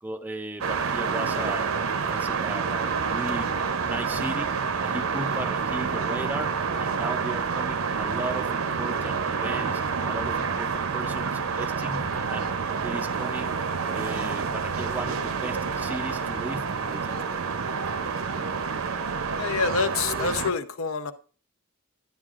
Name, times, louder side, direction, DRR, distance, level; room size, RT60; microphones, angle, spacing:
voice 1, 0.0-1.7 2.1-3.5 3.8-13.6 13.9-17.6 20.1-20.3, right 1 dB, 10° right, 0.4 m, -36 dB
sound 1, 0.6-20.5, right 5 dB, 70° right, 0.7 m, -28 dB
voice 2, 19.4-21.1, left 5 dB, 70° left, 0.7 m, -27 dB
11.5 x 9.6 x 2.4 m
head